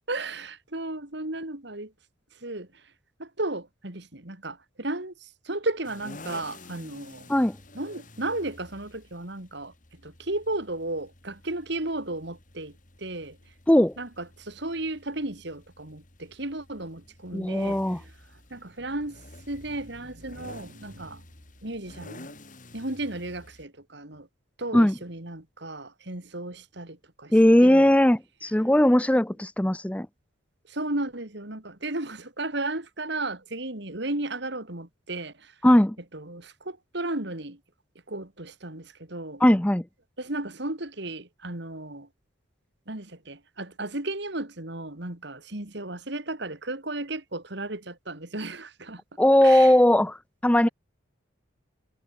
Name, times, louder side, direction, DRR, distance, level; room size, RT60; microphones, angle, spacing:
voice 1, 0.1-1.9 2.4-2.7 3.2-7.3 7.7-13.4 14.0-18.1 18.5-19.2 19.5-21.2 21.6-22.4 22.7-24.3 24.6-27.3 27.6-27.9 30.7-35.5 36.1-37.6 38.1-39.4 40.2-42.1 42.9-49.0 49.4-49.8, right 2 dB, 55° right, 2.7 m, -34 dB
sound 1, 5.8-23.6, left 2 dB, 40° left, 3.6 m, -50 dB
voice 2, 17.3-18.0 24.7-24.9 27.3-30.1 35.6-36.0 39.4-39.8 49.2-50.2 50.4-50.7, left 1 dB, 5° left, 0.5 m, -19 dB
head